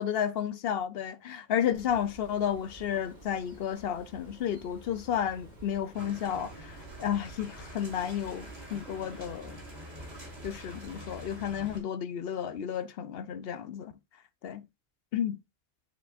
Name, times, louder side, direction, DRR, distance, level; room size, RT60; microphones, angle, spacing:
voice 1, 0.0-9.6 10.4-13.9 14.4-14.6 15.1-15.4, left 9 dB, 65° left, 0.8 m, -32 dB
Bird, 1.7-11.0, right 1 dB, 40° right, 4.7 m, -52 dB
sound 1, 5.9-11.8, right 1 dB, 70° right, 3.6 m, -46 dB
10.0 x 4.8 x 2.5 m
omnidirectional pair, 1.1 m